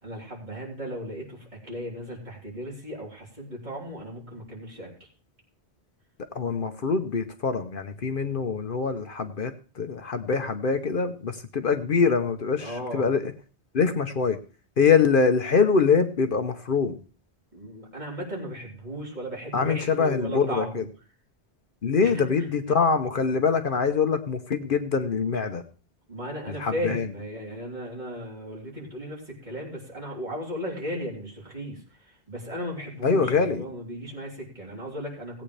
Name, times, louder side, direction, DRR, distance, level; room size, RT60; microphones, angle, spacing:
voice 1, 0.0-5.1 12.6-13.1 17.5-20.9 22.0-22.5 26.1-35.4, equal, 45° right, -3 dB, 3.7 m, -36 dB
voice 2, 6.3-13.3 13.7-14.4 14.8-17.0 19.5-20.8 21.8-25.6 26.5-27.1 33.0-33.6, left 5 dB, 55° left, 7 dB, 1.0 m, -24 dB
18.0 x 8.7 x 3.3 m, 0.37 s
omnidirectional pair, 1.1 m